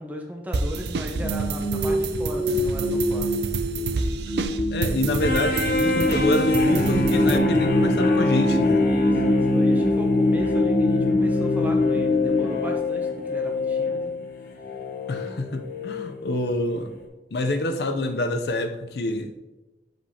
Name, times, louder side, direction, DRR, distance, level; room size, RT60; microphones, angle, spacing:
voice 1, 0.0-3.3 8.8-14.1, equal, 10° right, 1 dB, 0.7 m, -36 dB
sound 1, 0.5-7.4, right 3 dB, 75° right, 0.4 m, -30 dB
sound 2, 1.1-13.3, left 1 dB, 10° left, 1.7 m, -25 dB
voice 2, 4.7-8.9 15.1-16.9 17.3-19.3, left 1 dB, 70° left, 6 dB, 0.5 m, -26 dB
sound 3, 5.2-16.1 16.7-16.9, left 2 dB, 55° left, 1.0 m, -25 dB
7.4 x 5.1 x 2.8 m, 1.1 s
head